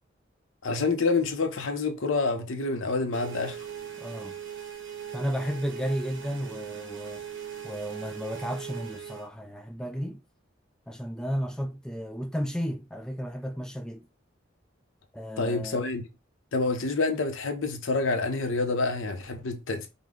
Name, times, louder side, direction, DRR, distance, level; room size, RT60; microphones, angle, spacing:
voice 1, 0.6-3.7 15.4-16.0 16.5-19.9, left 3 dB, 85° left, 0.8 m, -27 dB
sound 1, 3.1-9.3, right 9 dB, 70° right, 1.0 m, -40 dB
voice 2, 4.0-4.3 5.1-7.2 7.6-10.2 10.9-14.0 15.1-15.8, equal, 5° left, 0.4 m, -33 dB
5.2 x 2.1 x 3.7 m
head